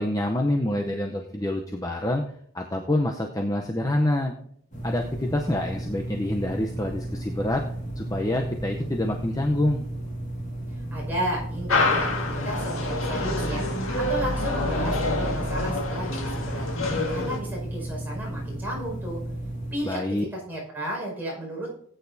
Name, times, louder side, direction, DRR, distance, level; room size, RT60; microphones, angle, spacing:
voice 1, 0.0-2.2 2.5-4.3 4.8-7.6 8.0-9.9 19.8-20.2, left 1 dB, 15° left, 2 dB, 0.7 m, -26 dB
sound 1, 4.7-19.7, right 1 dB, 35° left, 2.0 m, -34 dB
voice 2, 10.9-12.1 12.4-16.7 17.1-19.2 19.7-21.7, right 1 dB, 10° right, -5 dB, 5.3 m, -33 dB
sound 2, 11.7-17.4, left 2 dB, 70° left, 1.8 m, -27 dB
18.5 x 9.0 x 2.7 m, 0.66 s
head